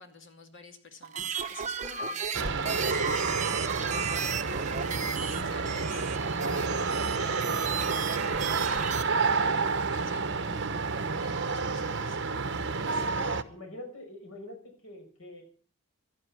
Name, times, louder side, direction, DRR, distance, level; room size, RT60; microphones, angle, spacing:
voice 1, 0.0-12.2 12.8-13.1, left 3 dB, 60° left, 5 dB, 2.6 m, -51 dB
sound 1, 1.0-9.0, right 6 dB, 35° right, 1.2 m, -34 dB
sound 2, 2.3-13.4, right 4 dB, 55° right, 1.0 m, -30 dB
voice 2, 13.5-15.4, left 1 dB, 75° left, 4 dB, 5.8 m, -44 dB
15.5 x 11.5 x 6.2 m, 0.43 s
head